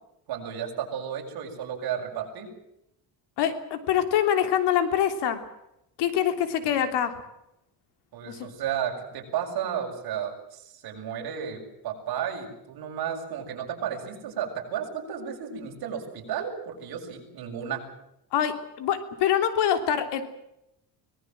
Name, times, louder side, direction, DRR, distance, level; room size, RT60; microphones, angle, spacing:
voice 1, 0.3-2.5 8.1-17.8, right 8 dB, 65° right, 1 dB, 7.0 m, -33 dB
voice 2, 3.4-5.4 6.0-7.1 8.3-8.5 18.3-20.2, left 9 dB, 90° left, 8 dB, 3.3 m, -25 dB
24.5 x 19.5 x 7.7 m, 0.83 s
cardioid pair, 150°, 40 cm